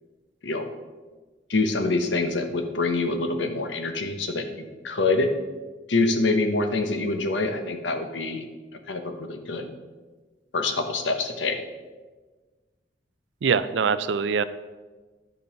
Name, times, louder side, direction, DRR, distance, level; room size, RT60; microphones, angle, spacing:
voice 1, 1.5-5.3 5.9-8.5 8.9-9.7 10.5-11.6, left 3 dB, 75° left, 7 dB, 0.9 m, -25 dB
voice 2, 13.4-14.4, right 6 dB, 70° right, 14 dB, 0.4 m, -23 dB
10.0 x 5.3 x 5.2 m, 1.3 s
head